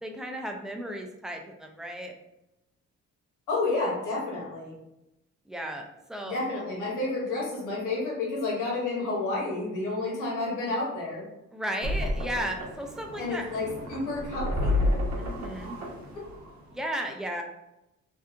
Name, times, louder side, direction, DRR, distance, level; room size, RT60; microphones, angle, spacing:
voice 1, 0.0-2.2 5.5-6.4 11.5-13.6 15.2-15.8 16.7-17.4, right 1 dB, ahead, 2 dB, 0.3 m, -35 dB
voice 2, 3.5-4.7 6.2-11.2 13.2-14.8, left 2 dB, 85° left, -4 dB, 1.0 m, -30 dB
sound 1, 11.8-16.8, left 1 dB, 65° right, 0.8 m, -31 dB
2.7 x 2.4 x 2.4 m, 0.89 s
cardioid pair, 90°, 30 cm